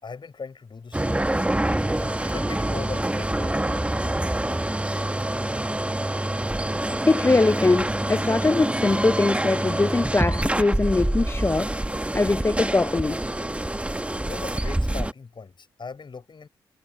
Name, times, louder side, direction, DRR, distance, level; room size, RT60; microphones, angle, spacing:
voice 1, 0.0-1.3 1.9-3.8 14.2-16.5, left 5 dB, 45° left, 5.6 m, -39 dB
sound 1, 0.9-15.1, right 1 dB, 10° right, 1.5 m, -26 dB
voice 2, 7.0-11.7 12.1-13.2, left 3 dB, 20° left, 0.6 m, -22 dB
hypercardioid pair, 45°, 12 cm